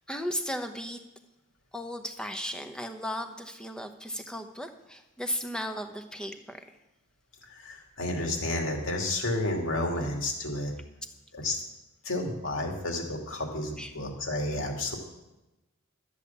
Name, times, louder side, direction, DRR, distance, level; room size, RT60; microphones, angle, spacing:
voice 1, 0.1-1.0 1.7-6.7 13.8-13.9, equal, 5° left, 6 dB, 0.9 m, -35 dB
voice 2, 7.4-10.7 11.3-11.6 12.0-15.0, left 1 dB, 60° left, 1 dB, 2.7 m, -31 dB
13.0 x 8.4 x 7.2 m, 0.99 s
head